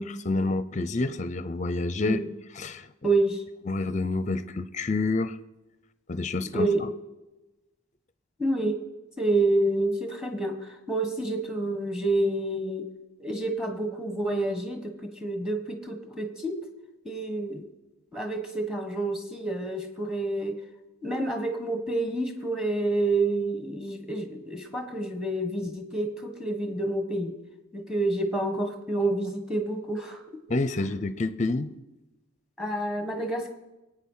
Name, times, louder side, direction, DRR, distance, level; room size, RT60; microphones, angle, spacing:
voice 1, 0.3-2.2 2.5-2.9 3.7-5.4 6.1-6.9 30.5-31.7, left 2 dB, 35° left, 0.6 m, -28 dB
voice 2, 3.0-3.4 6.5-6.8 8.4-8.8 9.2-10.5 10.9-12.8 13.2-16.6 17.0-17.6 18.1-20.6 21.0-27.3 27.7-30.2 32.6-33.5, right 2 dB, 5° right, 1.5 m, -28 dB
21.5 x 9.0 x 5.7 m
head